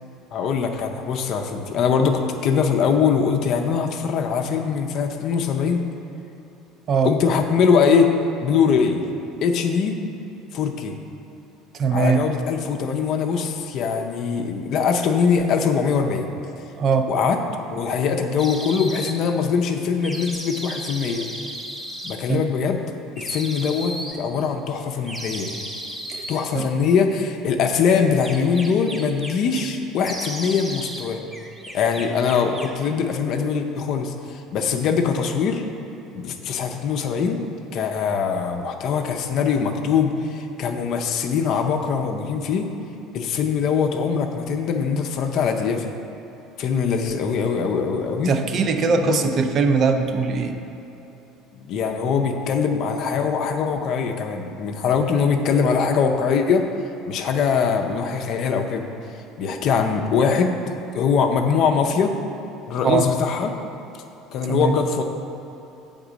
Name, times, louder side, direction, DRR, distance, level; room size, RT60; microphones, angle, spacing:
voice 1, 0.3-5.8 7.0-8.1 8.4-9.0 9.4-10.0 10.5-10.9 11.9-16.3 17.1-17.4 17.7-21.3 22.0-22.8 23.2-25.5 26.3-31.2 31.7-35.6 36.1-37.4 37.7-42.7 43.1-45.9 46.6-48.3 49.0-49.2 51.5-56.7 57.1-58.9 59.4-60.5 60.9-62.1 62.7-63.5 64.3-65.0, left 6 dB, 60° left, 4 dB, 0.5 m, -22 dB
voice 2, 11.7-12.3 13.9-14.0 16.8-17.1 22.3-22.4 26.1-26.3 26.5-26.7 48.2-50.6 62.8-63.1 64.5-64.8, right 5 dB, 45° right, 6 dB, 0.5 m, -21 dB
sound 1, 18.4-19.1 20.0-22.2 23.2-24.2 25.0-26.4 27.9-29.7 30.0-31.1 31.3-32.8, equal, 15° right, 0.8 m, -34 dB
7.0 x 3.6 x 5.0 m, 3.0 s
supercardioid pair, 100°, 0 cm